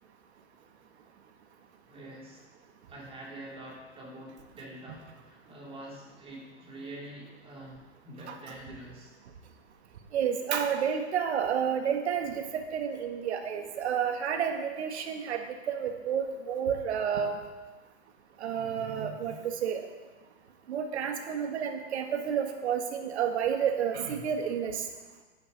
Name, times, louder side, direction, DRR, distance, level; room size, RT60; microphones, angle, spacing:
voice 1, 1.9-2.5 2.9-9.2, right 1 dB, 15° right, -3 dB, 2.9 m, -46 dB
voice 2, 10.1-12.4 12.7-15.4 15.7-17.4 18.4-19.8 20.7-24.8, right 8 dB, 70° right, 5 dB, 1.6 m, -30 dB
11.5 x 9.2 x 4.1 m, 1.3 s
hypercardioid pair, 125°, 34 cm